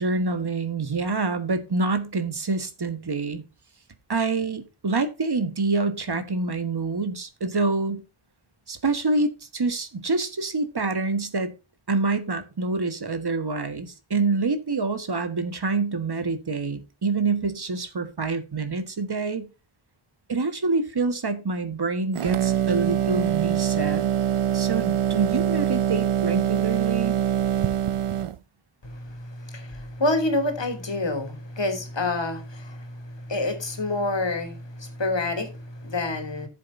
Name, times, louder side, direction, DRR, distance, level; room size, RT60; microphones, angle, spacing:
voice 1, 0.0-3.4 4.1-8.0 8.7-11.5 11.9-19.5 20.3-24.1 24.5-27.2, right 3 dB, 50° right, 1.5 m, -26 dB
sound 1, 22.1-28.4, right 9 dB, 85° right, 0.7 m, -24 dB
voice 2, 28.8-36.5, left 2 dB, 60° left, 2.9 m, -28 dB
14.0 x 7.7 x 2.7 m
wide cardioid pair, 75°, 49 cm